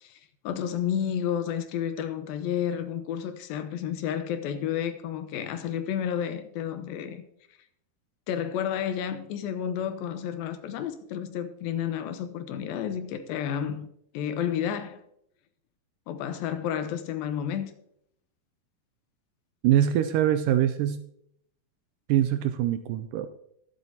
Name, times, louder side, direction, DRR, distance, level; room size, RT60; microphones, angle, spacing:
voice 1, 0.0-7.2 8.3-13.9 14.1-15.0 16.1-17.7, left 9 dB, 80° left, 2.7 m, -31 dB
voice 2, 19.6-21.0 22.1-23.3, right 11 dB, 80° right, 2.0 m, -23 dB
21.5 x 8.0 x 2.8 m
omnidirectional pair, 4.2 m